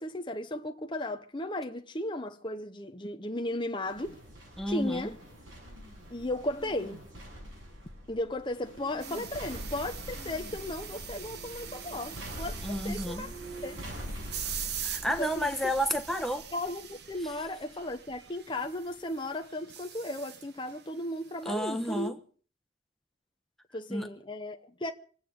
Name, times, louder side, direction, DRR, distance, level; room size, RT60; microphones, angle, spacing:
voice 1, 0.0-4.2 4.7-5.2 6.1-7.0 8.1-13.3 13.6-13.7 15.2-15.5 16.5-22.1 23.7-24.9, left 1 dB, 25° left, 0.9 m, -35 dB
sound 1, 3.9-19.3 19.7-19.8, equal, 75° right, 7.2 m, -44 dB
voice 2, 4.6-5.1 12.6-13.3 14.8-16.5 21.4-22.2 23.9-24.1, equal, ahead, 1.1 m, -31 dB
sound 2, 9.0-22.1, right 9 dB, 55° right, 1.0 m, -44 dB
25.5 x 8.7 x 5.0 m
head